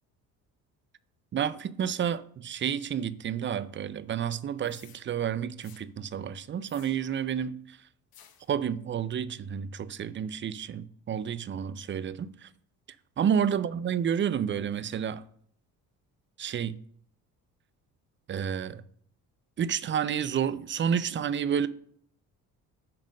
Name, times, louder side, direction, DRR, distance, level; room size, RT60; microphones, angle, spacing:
voice 1, 1.3-7.8 8.5-12.5 13.2-15.2 16.4-16.8 18.3-18.8 19.6-21.7, right 8 dB, 25° right, 0.5 m, -30 dB
sound 1, 4.6-5.0 5.6-5.9 6.7-7.3 8.1-8.5, left 9 dB, 55° left, 1.0 m, -56 dB
6.4 x 4.1 x 6.3 m
hypercardioid pair, 60°, 44 cm